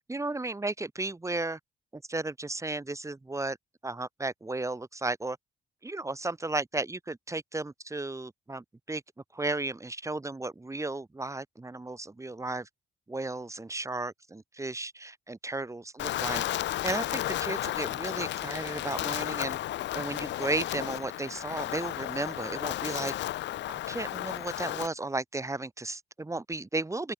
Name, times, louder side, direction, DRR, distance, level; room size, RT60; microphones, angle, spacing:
voice 1, 0.1-1.6 1.9-3.6 3.8-5.4 5.8-9.0 9.3-12.7 13.1-16.4 16.8-19.6 19.9-23.1 23.7-27.1, right 2 dB, 15° right, 1.5 m, -34 dB
Wind, 16.0-24.9, left 14 dB, 65° left, 0.5 m, -33 dB
open air
cardioid pair, 90°, 20 cm